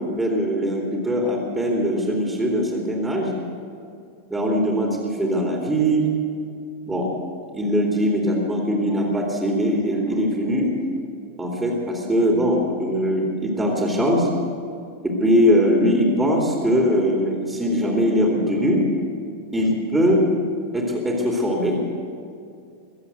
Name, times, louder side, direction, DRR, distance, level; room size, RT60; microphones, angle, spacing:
voice 1, 0.0-3.3 4.3-6.1 6.9-7.1 7.5-10.7 11.4-14.3 15.0-18.8 19.5-20.3 20.7-21.8, equal, 10° right, -1 dB, 2.6 m, -21 dB
22.0 x 8.0 x 8.0 m, 2.4 s
figure-of-eight pair, 90°, 0 cm